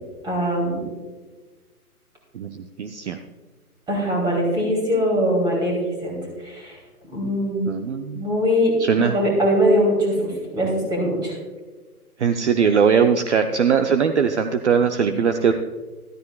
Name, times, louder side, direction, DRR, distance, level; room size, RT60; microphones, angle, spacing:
voice 1, 0.2-0.8 3.9-5.7 6.0-6.2 6.4-6.8 7.0-7.8 8.1-8.7 9.0-11.4, equal, 10° right, -1 dB, 2.8 m, -21 dB
voice 2, 2.3-3.2 7.7-8.3 8.8-9.2 12.2-15.5, right 6 dB, 50° right, 7 dB, 0.6 m, -20 dB
13.5 x 13.0 x 2.3 m, 1.3 s
hypercardioid pair, 145°, 45 cm